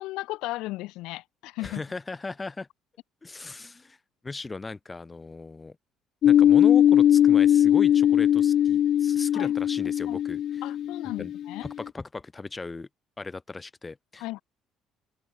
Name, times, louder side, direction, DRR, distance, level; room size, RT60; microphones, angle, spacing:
voice 1, 0.0-1.8 9.3-9.5 10.1-10.2 10.6-11.7 14.2-14.4, left 19 dB, 85° left, 5.9 m, -35 dB
voice 2, 1.6-2.7 3.2-4.0 4.2-5.8 6.2-10.6 11.2-11.3 11.6-12.9 13.2-14.2, left 3 dB, 15° left, 4.8 m, -37 dB
sound 1, 6.2-11.7, left 10 dB, 40° left, 0.8 m, -20 dB
open air
cardioid pair, 180°, 0 cm